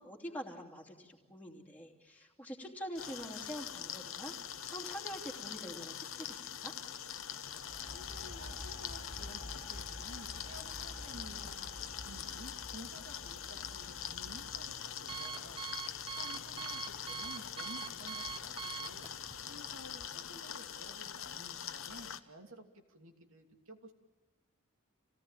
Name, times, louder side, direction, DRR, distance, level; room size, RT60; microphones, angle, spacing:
voice 1, 0.0-6.7, equal, 10° left, -1 dB, 2.9 m, -45 dB
sound 1, 3.0-22.2, left 9 dB, 65° left, 1.1 m, -43 dB
sound 2, 7.6-15.3, left 1 dB, 35° left, 1.7 m, -50 dB
voice 2, 7.9-15.6 16.1-22.6 22.9-23.9, right 1 dB, 65° right, 3 dB, 2.8 m, -53 dB
Alarm, 13.7-20.1, right 6 dB, 25° right, 0.8 m, -45 dB
28.0 x 18.0 x 9.0 m, 1.3 s
head